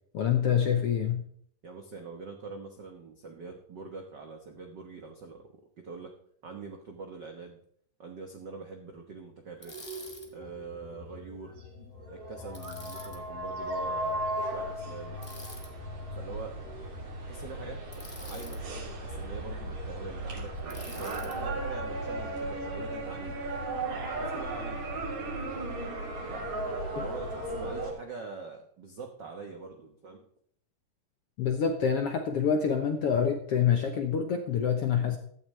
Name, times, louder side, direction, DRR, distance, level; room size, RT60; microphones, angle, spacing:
voice 1, 0.1-1.2 31.4-35.2, left 7 dB, 70° left, 5 dB, 1.5 m, -26 dB
voice 2, 1.6-5.5 5.8-6.1 6.4-7.6 8.0-9.8 10.3-11.6 12.1-15.2 16.1-16.6 17.3-17.8 18.2-23.4 23.8-24.8 26.3-26.5 26.9-30.3, right 4 dB, 75° right, 3 dB, 1.0 m, -44 dB
Bicycle, 9.6-10.3 12.5-13.2 15.2-15.7 17.9-18.6 20.7-21.4, left 1 dB, 20° left, 0.6 m, -47 dB
sound 1, 9.6-27.9, right 2 dB, 55° right, 4.2 m, -36 dB
sound 2, 10.0-26.2, left 5 dB, 85° left, 2.9 m, -49 dB
16.0 x 12.5 x 3.3 m, 0.63 s
omnidirectional pair, 3.9 m